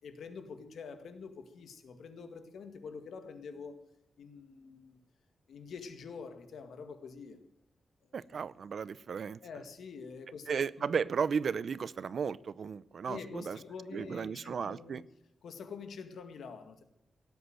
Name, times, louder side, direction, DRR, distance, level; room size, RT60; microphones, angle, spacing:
voice 1, 0.0-3.8 4.2-5.0 5.5-7.4 8.1-8.5 9.4-10.9 13.1-15.0 15.4-16.8, left 5 dB, 90° left, 8 dB, 2.0 m, -46 dB
voice 2, 8.1-9.4 10.5-13.6 13.9-15.0, right 6 dB, 60° right, 18 dB, 0.6 m, -34 dB
18.0 x 8.2 x 9.1 m, 0.84 s
wide cardioid pair, 140°, 0 cm